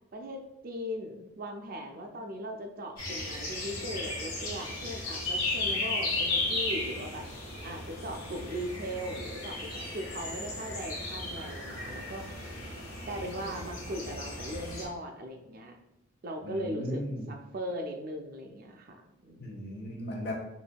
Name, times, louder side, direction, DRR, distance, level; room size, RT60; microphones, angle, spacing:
voice 1, 0.1-7.3 7.6-12.3 13.1-15.8 16.2-17.0 17.3-19.5, equal, 45° right, 4 dB, 0.4 m, -39 dB
sound 1, 3.0-14.8, left 2 dB, 85° left, 1.4 m, -35 dB
voice 2, 16.4-17.3 19.4-20.3, left 1 dB, 50° left, 0 dB, 0.8 m, -36 dB
5.1 x 2.6 x 2.2 m, 0.89 s
head